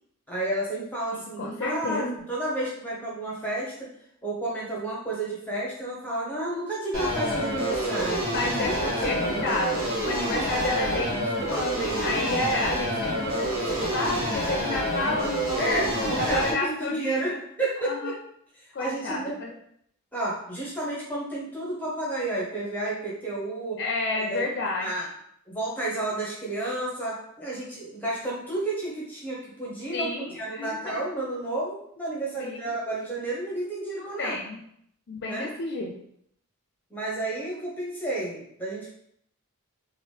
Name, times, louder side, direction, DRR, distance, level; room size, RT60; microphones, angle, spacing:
voice 1, 0.3-3.9 4.2-8.2 8.6-9.6 15.6-18.1 18.6-19.4 20.1-23.8 24.1-24.4 24.8-25.1 25.5-34.3 35.2-35.5 36.9-38.9, right 2 dB, 10° left, -5 dB, 0.6 m, -31 dB
voice 2, 1.1-2.2 8.3-17.4 17.9-18.1 18.7-19.5 23.8-24.9 29.9-31.0 32.4-32.7 34.0-34.6 35.1-36.0, left 2 dB, 50° left, 0 dB, 0.4 m, -31 dB
sound 1, 6.9-16.5, equal, 75° right, 1.2 m, -28 dB
2.9 x 2.5 x 3.1 m, 0.71 s
head